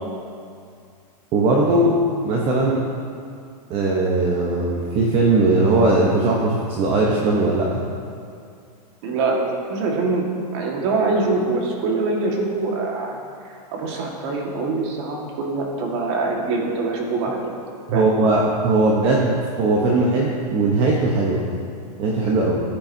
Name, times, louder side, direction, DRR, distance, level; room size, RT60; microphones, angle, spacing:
voice 1, 1.3-2.8 3.7-7.8 17.9-21.5 22.0-22.6, right 2 dB, 25° right, -3 dB, 0.9 m, -19 dB
voice 2, 9.0-13.2 13.4-17.5 17.9-18.1, right 3 dB, 45° right, 0 dB, 1.7 m, -24 dB
14.5 x 8.8 x 2.7 m, 2.4 s
supercardioid pair, 155°, 21 cm